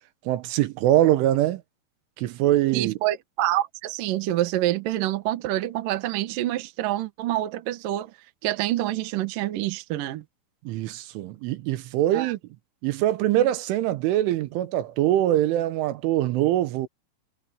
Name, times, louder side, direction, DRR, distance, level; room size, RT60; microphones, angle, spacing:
voice 1, 0.3-1.6 2.2-3.0 10.7-12.4 12.8-16.9, right 13 dB, 85° right, 3.6 m, -23 dB
voice 2, 2.7-8.1 8.4-10.2 12.1-12.3, right 14 dB, 65° right, 2.3 m, -27 dB
omnidirectional pair, 5.5 m